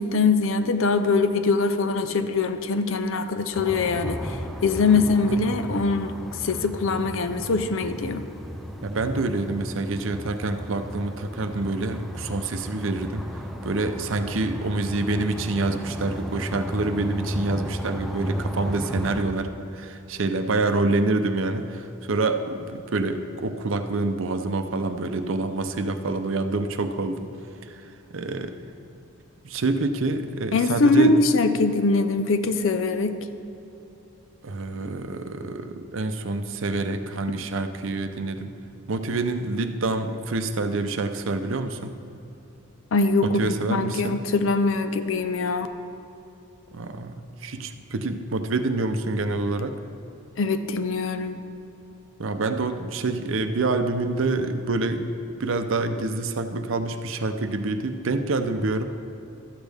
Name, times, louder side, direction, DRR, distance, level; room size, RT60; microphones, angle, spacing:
voice 1, 0.0-4.4 4.6-8.2 30.5-33.2 42.9-45.7 50.4-51.4, left 3 dB, 65° left, 10 dB, 0.5 m, -22 dB
sound 1, 3.5-19.2, equal, ahead, 0.4 m, -34 dB
voice 2, 8.8-13.2 13.6-27.2 27.7-28.5 29.4-31.2 34.4-38.5 38.9-41.9 43.2-44.2 46.7-47.1 47.4-49.7 52.2-55.1 55.4-58.8, right 3 dB, 65° right, 8 dB, 0.6 m, -27 dB
13.0 x 8.2 x 3.5 m, 2.9 s
head